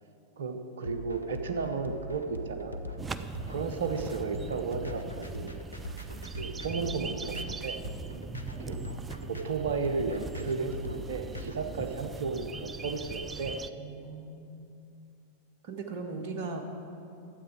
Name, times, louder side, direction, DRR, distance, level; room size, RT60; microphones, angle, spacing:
voice 1, 0.4-2.8 3.5-5.6 6.4-7.8 8.6-8.8 9.3-13.6, right 4 dB, 65° right, 7 dB, 0.8 m, -33 dB
sound 1, 0.9-11.5, equal, 85° left, 0.6 m, -41 dB
sound 2, 3.0-13.7, right 4 dB, 15° right, 0.4 m, -41 dB
voice 2, 8.1-8.4 13.8-14.7 15.6-16.6, right 4 dB, 50° right, 4 dB, 1.3 m, -39 dB
12.0 x 7.9 x 4.7 m, 2.6 s
figure-of-eight pair, 90°, 0 cm